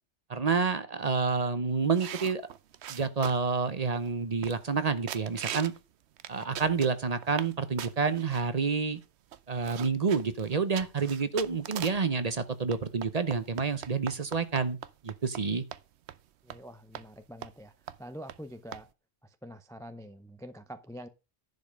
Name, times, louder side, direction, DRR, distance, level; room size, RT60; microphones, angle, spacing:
voice 1, 0.3-2.4 2.9-5.7 6.3-9.0 9.5-14.8 15.0-15.6, right 5 dB, 40° right, 0.8 m, -29 dB
sound 1, 1.9-3.6 4.1-4.2 4.4-4.8 5.1-5.8 6.2-7.5 7.8-8.4 9.0-9.1 9.3-12.1 12.7-15.4 15.7-15.8 16.1-16.2 16.5-16.6 16.9-17.1 17.4-17.6 17.9-18.0 18.3-18.4 18.7-18.8, right 10 dB, 70° right, 0.9 m, -40 dB
voice 2, 16.5-17.7 18.0-18.9 19.4-21.1, equal, 5° left, 0.3 m, -45 dB
10.5 x 5.2 x 5.1 m
omnidirectional pair, 1.2 m